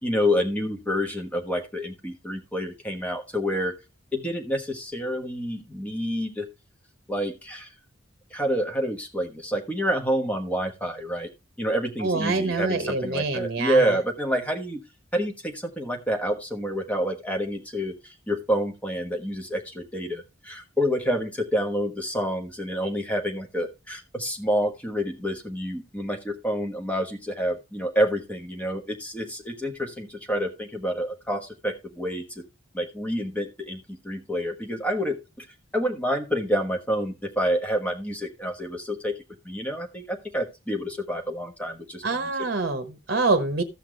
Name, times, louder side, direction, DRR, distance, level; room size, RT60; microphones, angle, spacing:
voice 1, 0.0-3.8 4.1-6.5 7.1-7.7 8.3-11.3 11.6-14.8 15.1-32.4 32.7-35.5 35.7-39.2 39.4-42.3, equal, 5° left, 3 dB, 1.3 m, -28 dB
voice 2, 12.0-13.9 42.0-43.6, right 3 dB, 50° right, 8 dB, 1.1 m, -25 dB
14.0 x 5.9 x 3.3 m, 0.25 s
head